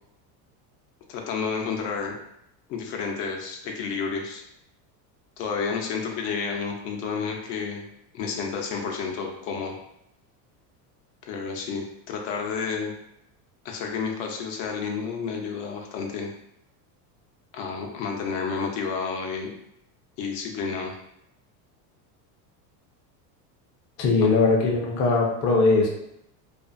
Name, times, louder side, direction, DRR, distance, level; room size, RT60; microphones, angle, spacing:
voice 1, 1.1-2.2 2.7-4.4 5.4-7.8 8.1-9.8 11.2-12.9 13.6-16.3 17.5-19.5 20.2-21.0, left 5 dB, 70° left, 1 dB, 0.7 m, -30 dB
voice 2, 24.0-25.9, left 3 dB, 30° left, -1 dB, 0.5 m, -20 dB
2.5 x 2.3 x 2.5 m, 0.78 s
supercardioid pair, 115°, 49 cm